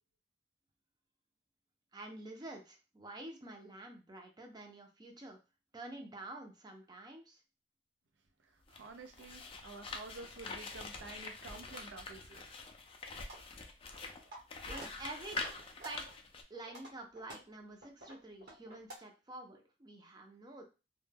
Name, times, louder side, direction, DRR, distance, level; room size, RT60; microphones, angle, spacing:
voice 1, 1.9-5.4 5.7-7.4 14.6-15.4 15.8-16.1 16.5-20.6, right 2 dB, 25° right, 2 dB, 0.5 m, -48 dB
voice 2, 8.4-12.4, right 3 dB, 90° right, 6 dB, 0.5 m, -50 dB
sound 1, 8.6-16.4, left 3 dB, 30° left, 0.3 m, -45 dB
sound 2, 13.2-13.4 13.9-14.4 14.7-14.9 15.4-16.1 16.5-19.0, right 1 dB, 60° right, 1.0 m, -50 dB
2.1 x 2.1 x 3.2 m, 0.30 s
head